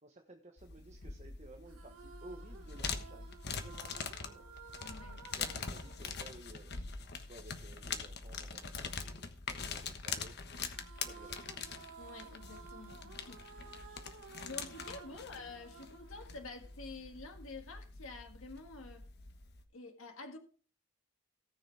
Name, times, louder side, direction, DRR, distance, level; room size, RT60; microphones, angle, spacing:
voice 1, 0.0-4.5 5.4-10.4 11.1-11.6 13.0-13.1 15.1-15.2, right 2 dB, 35° right, 1.1 m, -56 dB
sound 1, 0.6-19.6, left 5 dB, 50° left, 1.3 m, -44 dB
sound 2, 1.7-7.2 10.7-17.1, right 5 dB, 90° right, 1.5 m, -55 dB
voice 2, 4.8-5.2 12.0-13.4 13.9-14.0 14.4-19.1 19.7-20.4, left 3 dB, 80° left, 1.8 m, -49 dB
18.5 x 6.7 x 3.4 m
head